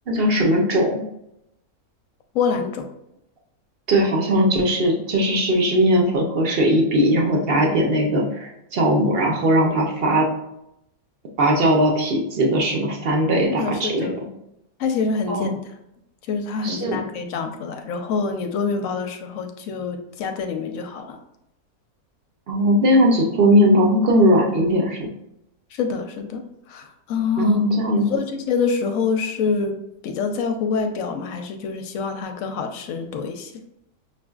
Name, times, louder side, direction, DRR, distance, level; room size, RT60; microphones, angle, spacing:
voice 1, 0.1-1.0 3.9-10.3 11.4-14.1 15.3-15.5 16.6-17.0 22.5-25.0 27.4-28.1, equal, 60° right, 0 dB, 0.6 m, -19 dB
voice 2, 2.3-2.8 13.5-14.1 14.8-15.6 16.3-21.2 25.7-26.4 26.7-27.6 27.9-29.8 30.0-33.5, left 5 dB, 70° left, 5 dB, 0.9 m, -26 dB
5.7 x 2.5 x 2.3 m, 0.82 s
omnidirectional pair, 1.6 m